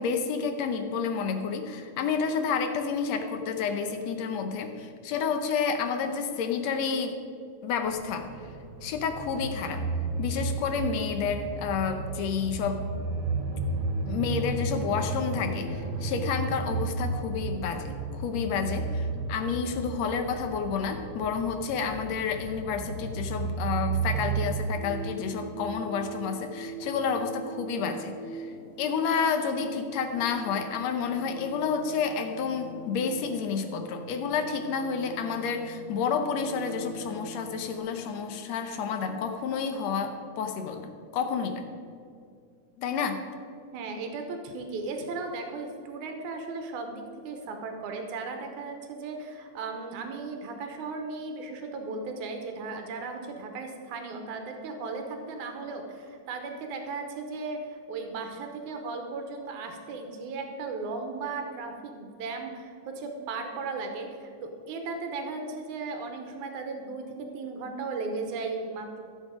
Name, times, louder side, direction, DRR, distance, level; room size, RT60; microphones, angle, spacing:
voice 1, 0.0-7.2 7.6-8.3 8.8-9.8 10.2-12.8 14.0-28.5 28.8-41.6 42.8-43.2, left 6 dB, 70° left, 6 dB, 1.8 m, -30 dB
sound 1, 7.9-24.5, right 3 dB, 65° right, 2.1 m, -33 dB
sound 2, 24.7-37.8, right 2 dB, 30° left, 1.8 m, -43 dB
voice 2, 43.7-69.0, right 3 dB, 90° right, 4 dB, 2.4 m, -36 dB
15.0 x 7.2 x 5.1 m, 2.4 s
omnidirectional pair, 3.4 m